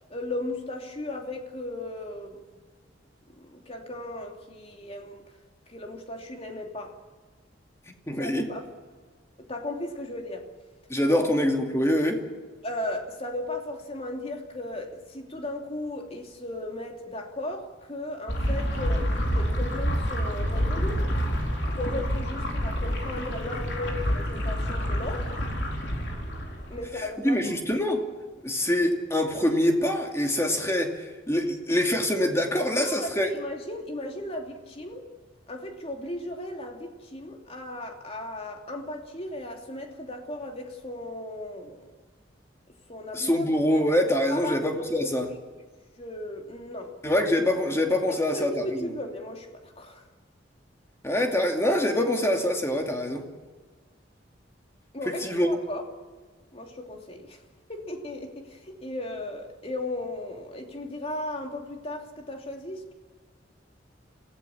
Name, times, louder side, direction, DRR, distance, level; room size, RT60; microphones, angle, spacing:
voice 1, 0.1-2.4 3.4-5.2 5.7-7.0 8.2-8.6 9.4-10.4 11.1-11.3 12.6-21.0 21.8-25.3 26.7-27.4 32.5-35.1 35.5-41.8 42.9-43.4 44.3-45.1 46.0-46.9 48.1-50.0 54.9-55.8 56.5-57.4 57.7-62.9, left 1 dB, 30° left, 3 dB, 2.9 m, -36 dB
voice 2, 8.1-8.5 10.9-12.2 27.2-28.0 28.4-30.9 31.3-33.3 43.1-45.3 47.0-48.5 51.0-53.2 55.2-55.5, left 1 dB, 15° left, 3 dB, 2.5 m, -24 dB
sound 1, 18.3-26.9, equal, 65° left, 4.3 m, -28 dB
26.5 x 16.5 x 7.2 m, 1.4 s
head